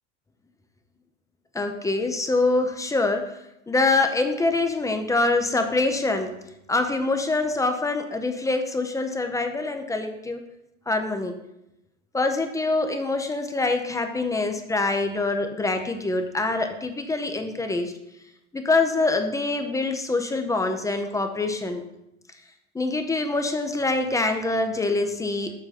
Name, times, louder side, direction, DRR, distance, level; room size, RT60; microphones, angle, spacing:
voice 1, 1.5-3.3 3.7-6.3 6.7-10.4 10.9-11.3 12.1-17.9 18.5-21.9 22.7-25.5, left 3 dB, 10° left, 6 dB, 0.7 m, -25 dB
7.3 x 6.3 x 4.2 m, 0.86 s
supercardioid pair, 120°, 34 cm